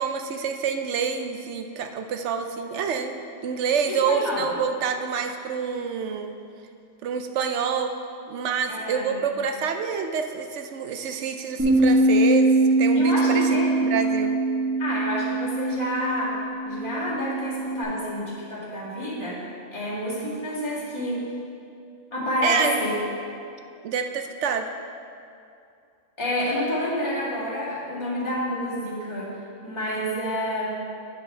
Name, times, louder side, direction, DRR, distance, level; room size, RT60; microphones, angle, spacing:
voice 1, 0.0-6.3 7.0-8.0 8.3-12.5 12.8-14.4 22.4-22.7 23.8-24.7, right 6 dB, 70° right, 6 dB, 0.9 m, -27 dB
voice 2, 3.9-4.6 8.7-9.3 12.9-13.7 14.8-19.4 19.7-21.3 22.1-23.0 26.2-29.3 29.6-30.7, left 1 dB, 20° left, -10 dB, 2.1 m, -29 dB
Bass guitar, 11.6-17.8, right 2 dB, 10° right, 2.2 m, -22 dB
9.2 x 5.7 x 4.4 m, 2.5 s
omnidirectional pair, 1.3 m